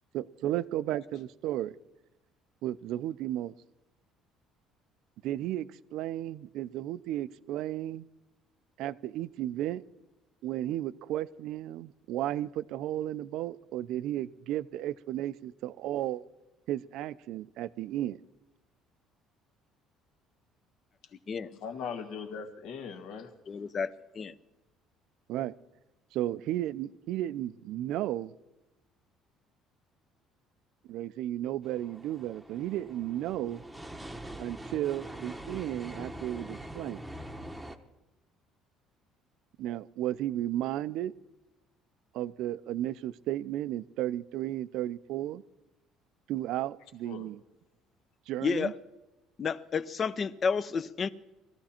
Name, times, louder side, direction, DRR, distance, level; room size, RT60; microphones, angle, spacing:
voice 1, 0.1-1.8 2.6-3.5 5.2-8.1 8.8-9.8 10.4-16.2 16.7-18.2 25.3-25.5 26.1-28.3 30.9-33.6 34.4-37.0 39.6-41.1 42.1-45.4 46.3-47.4 48.3-48.7, right 13 dB, 65° right, 0.5 m, -34 dB
voice 2, 21.6-23.3 47.1-47.3, left 6 dB, 70° left, 1.8 m, -39 dB
voice 3, 23.5-24.3 48.4-48.7 49.4-51.1, left 5 dB, 30° left, 0.6 m, -31 dB
sound 1, 31.6-37.8, right 1 dB, 5° right, 1.0 m, -44 dB
20.5 x 14.5 x 4.4 m
cardioid pair, 155°, 0 cm